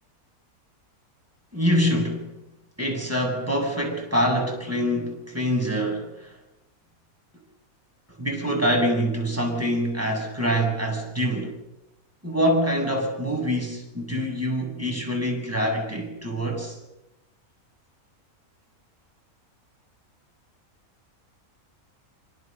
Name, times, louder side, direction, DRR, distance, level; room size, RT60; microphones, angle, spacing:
voice 1, 1.5-2.3 2.8-6.3 8.2-11.5 12.2-16.8, equal, 10° right, 0 dB, 7.9 m, -25 dB
26.0 x 25.5 x 7.0 m, 0.95 s
omnidirectional pair, 1.5 m